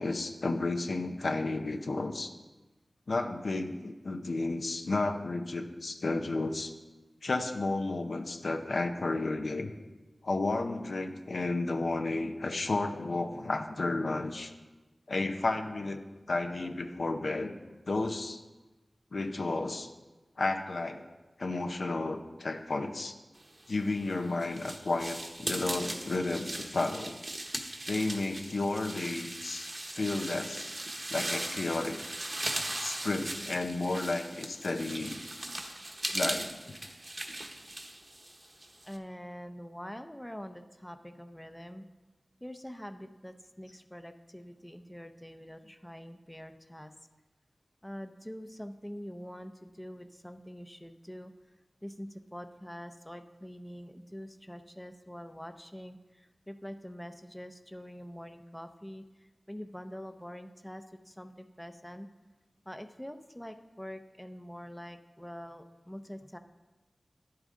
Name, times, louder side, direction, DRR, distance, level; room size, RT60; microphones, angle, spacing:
voice 1, 0.0-2.3 3.1-6.7 7.2-9.7 10.2-14.5 15.1-16.0 16.3-17.5 17.9-18.4 19.1-19.9 20.4-21.0 21.4-23.1 23.7-27.2 27.9-30.7 31.1-32.0 32.8-35.2 36.1-36.6, left 2 dB, 80° left, 5 dB, 0.7 m, -32 dB
sound 1, 23.8-39.0, right 1 dB, 40° right, 1.1 m, -38 dB
voice 2, 38.8-41.8 42.4-46.9 47.8-51.3 51.8-59.0 59.5-62.1 62.7-66.4, equal, 10° left, 8 dB, 0.6 m, -45 dB
10.5 x 8.8 x 3.7 m, 1.2 s
cardioid pair, 45°, 0 cm